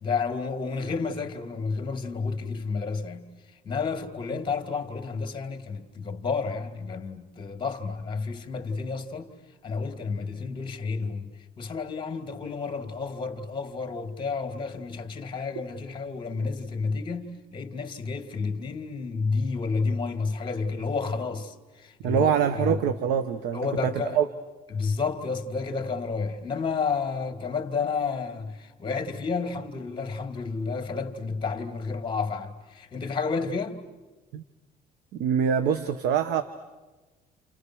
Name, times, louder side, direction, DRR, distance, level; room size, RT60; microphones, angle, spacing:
voice 1, 0.0-9.3 9.6-22.8 23.5-24.2 24.7-33.8, left 4 dB, 30° left, 2.8 m, -31 dB
voice 2, 22.0-24.3 34.3-34.4 35.2-36.4, right 8 dB, 85° right, 1.2 m, -24 dB
30.0 x 29.5 x 6.4 m
cardioid pair, 110°, 17 cm